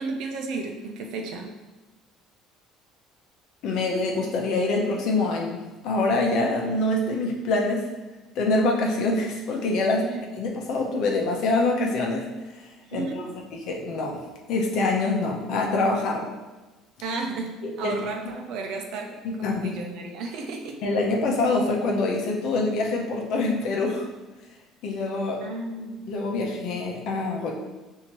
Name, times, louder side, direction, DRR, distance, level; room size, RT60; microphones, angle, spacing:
voice 1, 0.0-1.5 10.0-10.2 12.8-13.3 17.0-20.8 25.4-26.1, right 3 dB, 60° right, 3 dB, 0.6 m, -33 dB
voice 2, 3.6-5.6 5.8-7.9 8.4-10.0 10.3-12.3 12.5-12.6 12.9-13.1 13.5-14.2 14.5-16.3 17.8-18.0 19.2-19.8 20.8-24.1 24.8-25.4 26.1-27.5, left 2 dB, 60° left, 0 dB, 0.8 m, -25 dB
5.9 x 2.8 x 3.0 m, 1.1 s
cardioid pair, 155°, 0 cm